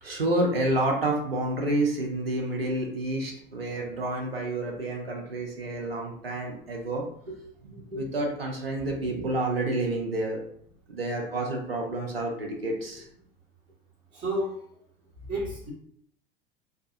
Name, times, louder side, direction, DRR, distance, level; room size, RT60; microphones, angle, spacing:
voice 1, 0.0-10.4 10.9-13.1, right 1 dB, 85° right, 0 dB, 0.6 m, -29 dB
voice 2, 14.1-14.6 15.3-15.7, right 1 dB, 25° right, -9 dB, 1.1 m, -30 dB
2.7 x 2.2 x 2.6 m, 0.66 s
figure-of-eight pair, 80°, 29 cm